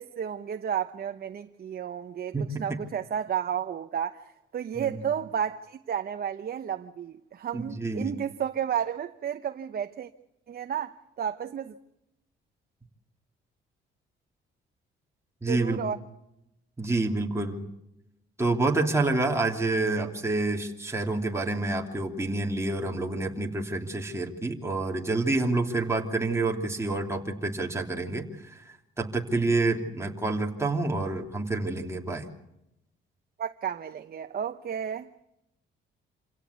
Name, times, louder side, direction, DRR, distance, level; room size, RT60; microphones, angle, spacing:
voice 1, 0.0-10.1 10.5-11.7 15.5-16.0 33.4-35.1, right 8 dB, 50° right, 1.0 m, -32 dB
voice 2, 2.3-2.8 4.8-5.0 7.5-8.1 15.4-15.9 16.8-17.7 18.4-28.6 29.0-32.2, right 2 dB, 15° right, 3.0 m, -28 dB
27.0 x 17.0 x 8.2 m
cardioid pair, 90°, 20 cm